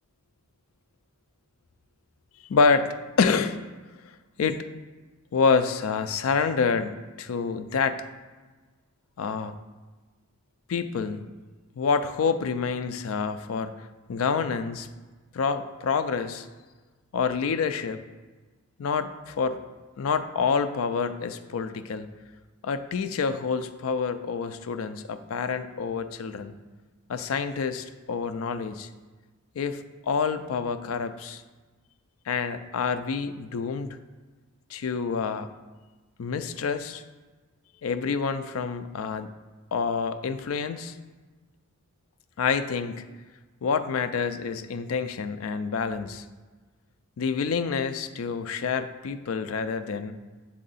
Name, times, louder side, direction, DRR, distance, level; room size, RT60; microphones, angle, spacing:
voice 1, 2.5-3.6 4.4-4.6 5.3-8.0 9.2-9.6 10.7-11.3 11.8-14.9 15.3-16.5 17.1-18.0 18.8-19.6 20.0-22.1 22.6-26.5 27.1-28.9 29.6-31.4 32.3-33.9 34.7-35.5 36.2-37.0 37.8-39.3 39.7-41.0 42.4-43.0 43.6-46.3 47.2-50.1, left 5 dB, 90° left, 11 dB, 0.4 m, -27 dB
7.6 x 3.7 x 4.0 m, 1.3 s
head